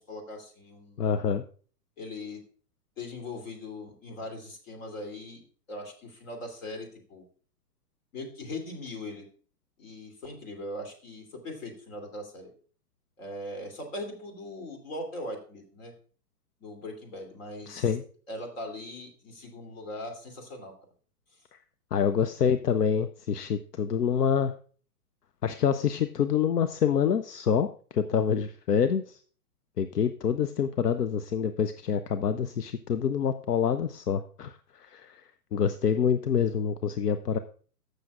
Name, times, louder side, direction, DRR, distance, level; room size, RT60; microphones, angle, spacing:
voice 1, 0.0-1.0 2.0-2.4 3.0-5.4 5.7-7.3 8.1-9.2 9.8-12.5 13.2-15.9 16.6-18.0 18.3-20.7 21.3-21.4, left 1 dB, 55° left, 4 dB, 2.9 m, -40 dB
voice 2, 1.0-1.4 17.7-18.0 21.9-24.5 25.4-27.7 27.9-29.2 29.8-34.5 34.9-35.2 35.5-37.4, left 7 dB, 85° left, 11 dB, 0.6 m, -26 dB
14.5 x 6.4 x 2.4 m, 0.43 s
figure-of-eight pair, 115°, 46 cm